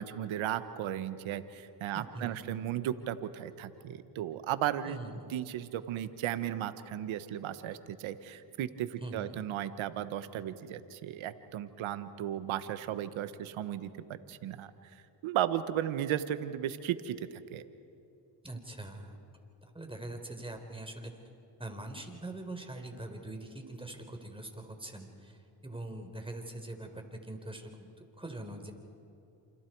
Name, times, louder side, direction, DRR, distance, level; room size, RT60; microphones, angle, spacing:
voice 1, 0.0-14.9 15.2-17.6, right 11 dB, 90° right, 12 dB, 1.3 m, -35 dB
voice 2, 1.9-2.5 4.8-5.3 9.0-9.4 18.4-19.2 19.6-21.1 21.6-27.9 28.2-28.7, right 2 dB, 10° right, 4 dB, 4.3 m, -43 dB
29.0 x 28.0 x 4.7 m, 2.9 s
cardioid pair, 65°, 46 cm